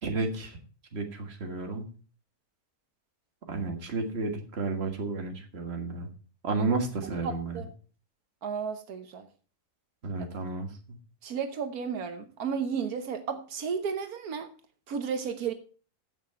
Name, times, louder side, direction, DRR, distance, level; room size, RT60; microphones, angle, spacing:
voice 1, 0.0-0.6 0.9-1.9 3.5-6.1 6.4-7.6 10.0-10.7, right 3 dB, 45° right, 4 dB, 1.9 m, -32 dB
voice 2, 7.2-7.7 8.4-9.3 11.2-14.5 14.9-15.5, right 6 dB, 85° right, 7 dB, 1.5 m, -33 dB
15.0 x 6.2 x 4.4 m, 0.38 s
omnidirectional pair, 1.6 m